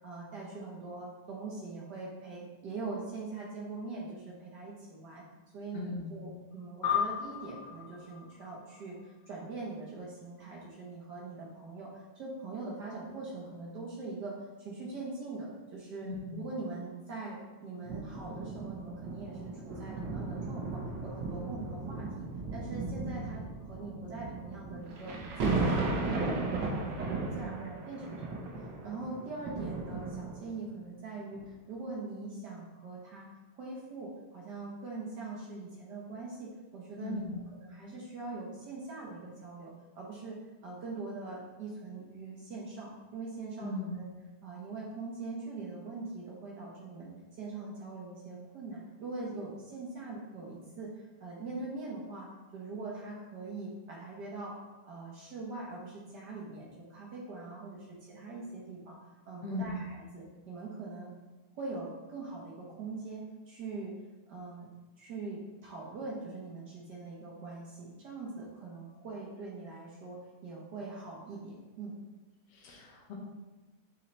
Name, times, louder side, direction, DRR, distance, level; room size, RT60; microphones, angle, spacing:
voice 1, 0.0-5.2 5.5-22.2 22.5-28.4 28.8-33.3 33.6-44.1 44.4-52.3 52.5-54.5 54.8-59.0 59.3-61.1 61.5-63.9 64.3-64.7 65.0-71.9, right 3 dB, 90° right, -4 dB, 0.9 m, -42 dB
voice 2, 5.7-6.2 16.0-16.4 37.0-37.4 43.6-44.0 59.4-59.7 72.5-73.1, left 3 dB, 60° left, -2 dB, 2.2 m, -38 dB
sound 1, 6.8-9.6, left 8 dB, 85° left, 2.5 m, -35 dB
sound 2, 17.8-30.6 31.3-31.5, right 3 dB, 70° right, 1.0 m, -36 dB
6.9 x 6.4 x 3.3 m, 1.2 s
omnidirectional pair, 3.5 m